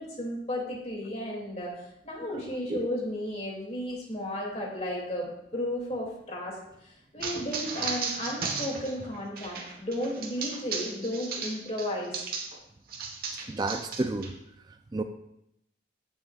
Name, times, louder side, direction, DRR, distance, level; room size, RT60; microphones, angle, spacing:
voice 1, 0.0-6.6 6.8-12.2, left 1 dB, 35° left, -2 dB, 2.4 m, -34 dB
sound 1, 7.2-12.6 12.9-14.3, right 4 dB, 50° right, 1.2 m, -35 dB
voice 2, 13.3-14.3 14.7-15.0, right 2 dB, 20° right, 6 dB, 0.4 m, -31 dB
16.0 x 6.2 x 2.4 m, 0.80 s
head